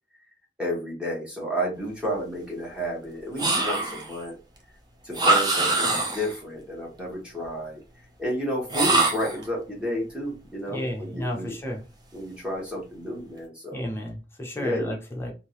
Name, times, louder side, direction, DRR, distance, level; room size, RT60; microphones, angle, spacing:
voice 1, 0.6-4.3 5.0-7.8 8.2-11.5 12.1-13.9 14.6-14.9, equal, 5° right, 1.5 m, -31 dB
sound 1, 3.4-4.2 5.1-6.4 8.7-9.4, right 2 dB, 25° right, 0.6 m, -23 dB
voice 2, 10.7-11.8 13.7-15.3, equal, 15° left, 0.7 m, -32 dB
3.6 x 2.7 x 3.0 m
head